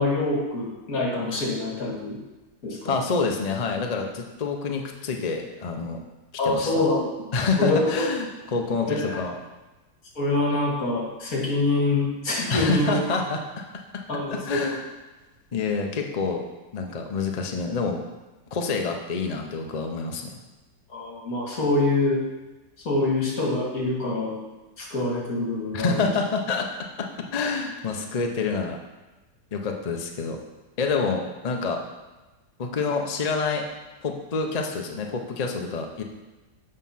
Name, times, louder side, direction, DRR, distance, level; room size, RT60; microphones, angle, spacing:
voice 1, 0.0-2.2 2.6-3.0 6.4-7.0 7.6-8.1 8.8-9.2 10.2-12.9 14.1-14.7 20.9-22.2 22.9-24.4 24.8-26.1, left 2 dB, 50° left, -2 dB, 2.2 m, -25 dB
voice 2, 2.8-6.0 6.4-6.7 7.3-9.4 12.5-13.6 13.9-14.0 14.3-14.8 15.5-16.4 16.7-18.0 18.5-20.3 25.7-26.7 27.0-28.8 29.5-30.4 30.8-31.8 32.6-33.7 34.0-36.0, left 4 dB, 85° left, 3 dB, 0.3 m, -27 dB
7.4 x 5.2 x 5.7 m, 1.1 s
omnidirectional pair, 2.0 m